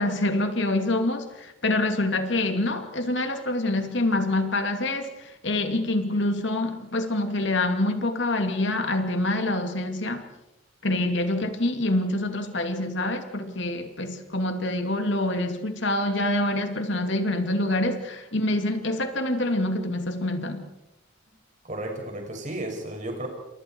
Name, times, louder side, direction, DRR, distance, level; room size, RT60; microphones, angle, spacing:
voice 1, 0.0-10.2 10.8-20.7, left 2 dB, 65° left, 2.6 m, -26 dB
voice 2, 21.6-23.3, right 1 dB, 35° right, 6.2 m, -33 dB
29.5 x 27.5 x 4.6 m
head